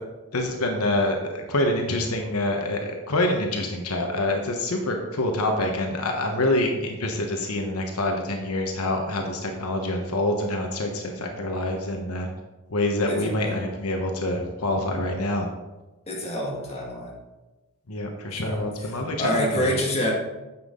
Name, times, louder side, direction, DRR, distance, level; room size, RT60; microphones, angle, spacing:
voice 1, 0.3-12.3 12.7-15.5 17.9-19.7, left 1 dB, 80° left, 2 dB, 1.2 m, -26 dB
voice 2, 13.1-13.8 16.1-17.1 18.4-20.1, equal, 30° left, -2 dB, 2.2 m, -28 dB
10.0 x 7.4 x 3.8 m, 1.1 s
head